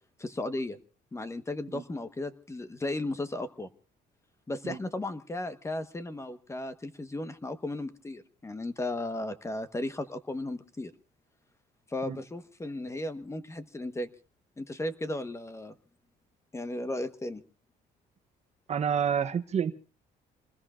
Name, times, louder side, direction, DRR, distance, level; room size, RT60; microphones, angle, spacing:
voice 1, 0.2-0.8 1.1-3.7 4.5-10.9 11.9-14.1 14.6-15.7 16.5-17.4, left 2 dB, 15° left, 11 dB, 1.2 m, -35 dB
voice 2, 18.7-19.7, right 7 dB, 40° right, 10 dB, 0.9 m, -28 dB
27.0 x 20.5 x 2.5 m, 0.34 s
cardioid pair, 110°, 17 cm